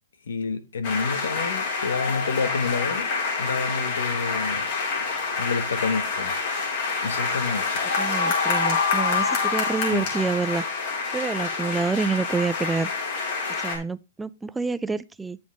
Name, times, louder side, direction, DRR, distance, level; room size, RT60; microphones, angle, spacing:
voice 1, 0.3-3.1 3.4-4.7 5.4-6.3 7.0-7.8 9.9-10.0, left 4 dB, 80° left, 1.5 m, -28 dB
sound 1, 0.8-13.8, left 4 dB, 40° left, 4.0 m, -27 dB
voice 2, 8.0-10.6 11.1-12.9 13.6-15.4, right 4 dB, 5° right, 0.4 m, -27 dB
8.7 x 7.3 x 3.4 m
hypercardioid pair, 170°, 0 cm